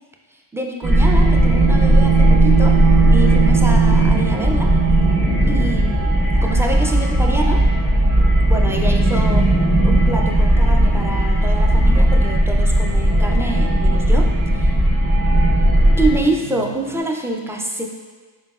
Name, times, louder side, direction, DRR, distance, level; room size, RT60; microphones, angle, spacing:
voice 1, 0.5-2.8 3.1-4.7 5.5-7.6 8.5-9.5 9.8-14.3 14.5-14.7 16.0-17.9, right 2 dB, 5° right, 1 dB, 0.4 m, -26 dB
sound 1, 0.8-16.2, right 1 dB, 25° right, 1.3 m, -15 dB
sound 2, 3.9-17.0, right 3 dB, 65° right, 0.6 m, -37 dB
4.2 x 3.9 x 2.4 m, 1.4 s
wide cardioid pair, 60°, 45 cm